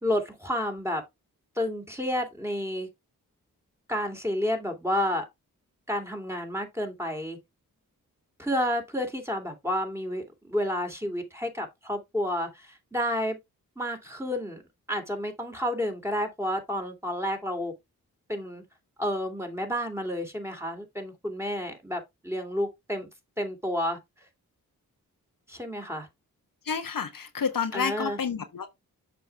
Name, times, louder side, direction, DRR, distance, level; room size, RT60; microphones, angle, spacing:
voice 1, 0.0-1.0 1.6-2.9 3.9-5.3 5.9-7.4 8.4-13.4 13.8-14.6 14.9-17.7 18.3-18.6 19.0-23.1 23.4-24.0 25.5-26.1 27.7-28.2, equal, 5° right, 2.9 m, -30 dB
voice 2, 26.7-28.7, left 6 dB, 65° left, 1.2 m, -30 dB
6.9 x 5.2 x 3.4 m
cardioid pair, 45°, 36 cm